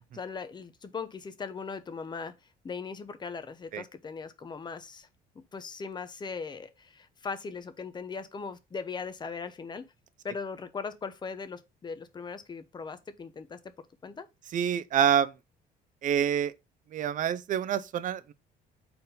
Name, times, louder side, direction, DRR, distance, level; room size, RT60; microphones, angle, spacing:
voice 1, 0.0-2.3 2.6-5.1 5.3-9.9 10.2-13.6 14.0-14.3, left 5 dB, 25° left, 0.8 m, -39 dB
voice 2, 14.5-15.3 16.0-16.5 16.9-18.3, right 9 dB, 50° right, 0.6 m, -27 dB
4.4 x 4.0 x 5.3 m
cardioid pair, 110°, 17 cm